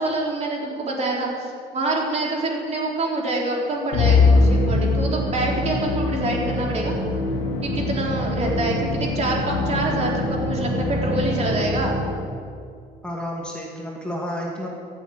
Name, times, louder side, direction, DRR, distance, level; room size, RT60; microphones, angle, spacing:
voice 1, 0.0-6.9 7.6-12.0, right 2 dB, 40° right, -2 dB, 3.6 m, -26 dB
Musical instrument, 3.9-12.4, left 3 dB, 85° left, 2.6 m, -23 dB
voice 2, 13.0-14.7, equal, 5° left, -2 dB, 2.3 m, -30 dB
14.5 x 7.4 x 9.3 m, 2.2 s
cardioid pair, 110°, 17 cm